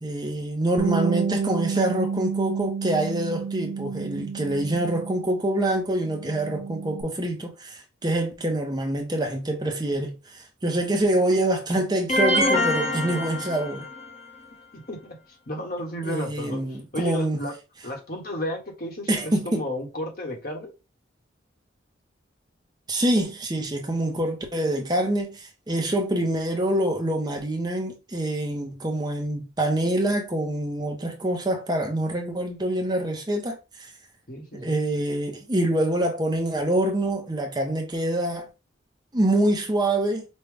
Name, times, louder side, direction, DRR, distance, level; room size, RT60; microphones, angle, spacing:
voice 1, 0.0-13.8 16.0-17.4 19.1-19.6 22.9-33.9 34.5-38.5 39.1-40.3, right 1 dB, 20° right, 0.7 m, -25 dB
Bass guitar, 0.8-5.5 5.8-7.0, right 6 dB, 50° right, 0.5 m, -30 dB
sound 1, 12.1-14.2, left 1 dB, 35° left, 0.9 m, -24 dB
voice 2, 14.7-15.2 15.5-16.6 16.9-17.5 17.8-20.7 34.3-34.8, equal, 50° left, 1.3 m, -33 dB
5.3 x 2.3 x 3.4 m
head